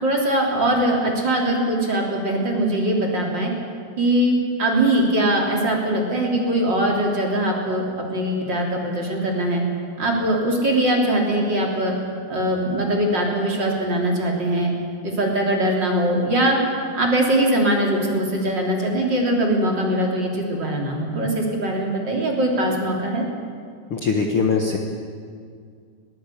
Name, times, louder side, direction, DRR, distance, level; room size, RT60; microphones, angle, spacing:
voice 1, 0.0-3.5 4.0-9.6 10.0-11.9 12.3-14.7 15.0-16.6 16.9-23.2, right 1 dB, 30° right, 0 dB, 3.4 m, -21 dB
voice 2, 23.9-24.8, left 5 dB, 75° left, 2 dB, 1.2 m, -21 dB
21.5 x 19.5 x 8.5 m, 2.1 s
omnidirectional pair, 4.7 m